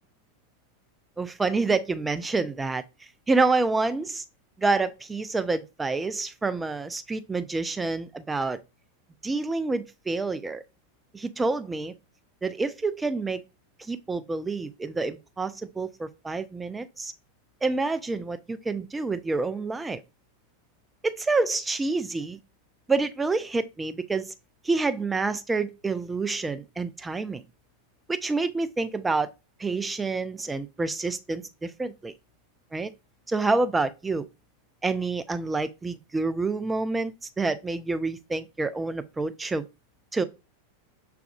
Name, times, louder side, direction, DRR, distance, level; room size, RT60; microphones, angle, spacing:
voice 1, 1.2-2.8 3.3-4.2 4.6-8.6 9.2-10.6 11.1-11.9 12.4-13.4 13.9-17.1 17.6-20.0 21.0-22.4 22.9-24.3 24.6-27.4 28.1-29.3 29.6-32.1 32.7-32.9 33.3-34.2 34.8-39.6 40.1-40.2, right 3 dB, 10° right, 0.4 m, -28 dB
6.0 x 3.4 x 2.3 m
figure-of-eight pair, 90°, 0 cm